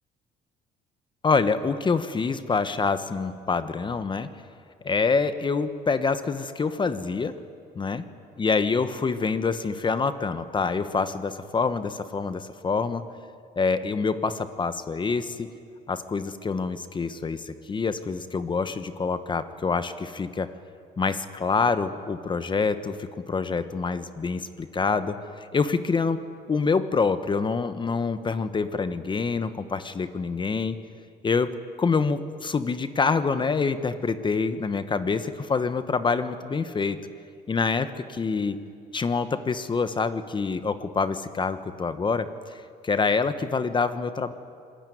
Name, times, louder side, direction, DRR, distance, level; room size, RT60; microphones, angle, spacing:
voice 1, 1.2-4.3 4.8-7.4 7.7-8.0 8.4-13.0 13.6-15.5 15.9-20.5 21.0-25.2 25.5-30.8 31.2-37.0 37.5-38.6 38.9-44.3, left 4 dB, 30° left, 11 dB, 1.2 m, -26 dB
25.5 x 20.0 x 9.4 m, 2.3 s
cardioid pair, 110°, 17 cm